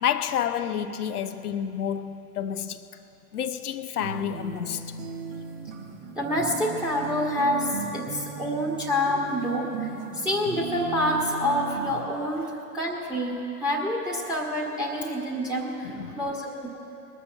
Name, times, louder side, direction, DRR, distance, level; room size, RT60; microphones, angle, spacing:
voice 1, 0.0-2.9 3.3-5.0 15.8-16.3, left 9 dB, 70° left, 0.8 m, -30 dB
sound 1, 4.0-12.0, right 5 dB, 45° right, 1.7 m, -37 dB
voice 2, 6.1-16.8, equal, ahead, 1.5 m, -27 dB
20.5 x 6.8 x 7.3 m
figure-of-eight pair, 95°, 47 cm